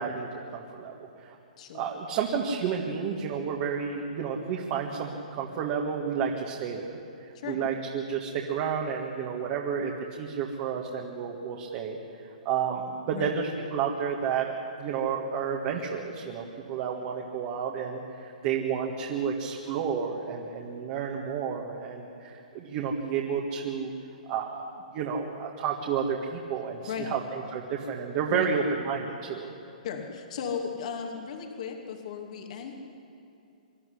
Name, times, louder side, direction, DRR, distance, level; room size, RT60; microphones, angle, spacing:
voice 1, 0.0-1.4 1.7-7.0 7.4-12.0 12.5-23.9 24.3-24.6 24.9-29.5, right 6 dB, 40° right, -1 dB, 1.9 m, -31 dB
voice 2, 29.8-32.8, left 6 dB, 55° left, 2 dB, 2.6 m, -36 dB
25.5 x 12.0 x 9.9 m, 2.7 s
hypercardioid pair, 145°, 4 cm